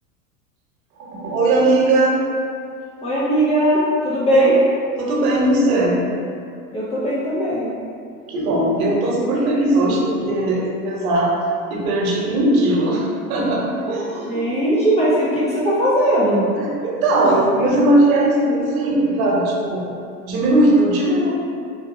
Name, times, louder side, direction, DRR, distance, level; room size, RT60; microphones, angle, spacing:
voice 1, 1.0-2.2 4.3-4.5 5.0-6.0 8.2-11.3 11.7-14.4 16.5-19.9 20.3-21.3, right 1 dB, 70° right, -3 dB, 0.9 m, -19 dB
voice 2, 3.0-4.6 6.7-7.7 13.8-13.9 14.2-16.5, right 1 dB, 15° left, -8 dB, 0.4 m, -19 dB
3.6 x 2.6 x 2.6 m, 2.4 s
hypercardioid pair, 110°, 43 cm